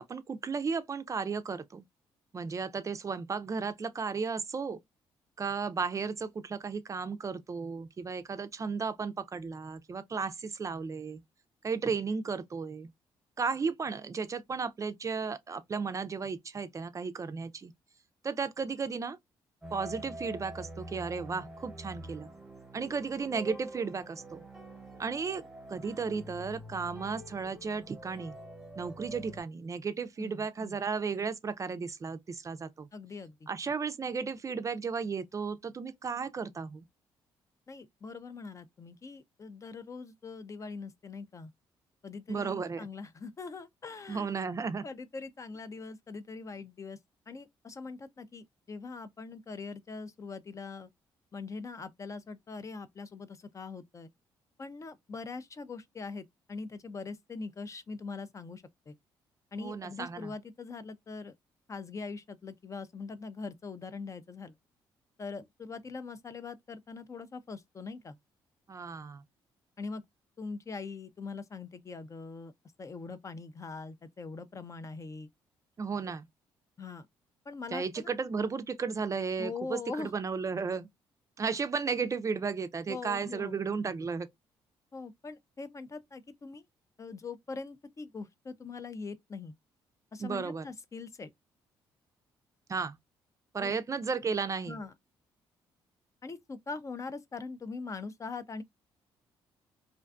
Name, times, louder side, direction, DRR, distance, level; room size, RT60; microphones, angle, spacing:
voice 1, 0.0-1.8 2.3-4.8 5.4-11.2 11.6-12.9 13.4-17.7 18.2-19.2 19.7-22.3 22.7-24.4 25.0-25.4 25.7-28.3 28.8-32.9 33.5-36.9 42.3-42.9 44.1-44.8 59.6-60.3 68.7-69.2 75.8-76.3 77.7-80.9 81.4-84.3 90.2-90.7 92.7-93.0 93.5-94.8, right 5 dB, 35° right, 0.4 m, -34 dB
sound 1, 19.6-29.4, right 1 dB, ahead, 0.8 m, -46 dB
voice 2, 30.2-30.8 32.9-33.5 37.7-41.5 42.0-44.3 44.8-47.0 47.3-50.9 51.3-54.1 54.6-59.0 59.5-61.3 61.7-64.5 65.2-68.2 69.8-70.0 70.4-72.5 72.8-75.3 76.8-77.1 77.5-78.1 79.4-80.1 82.9-83.6 84.9-86.6 87.0-89.5 90.1-91.3 93.6-93.7 94.7-94.9 96.2-98.6, left 4 dB, 30° left, 0.4 m, -42 dB
2.5 x 2.2 x 2.4 m
supercardioid pair, 60°, 10 cm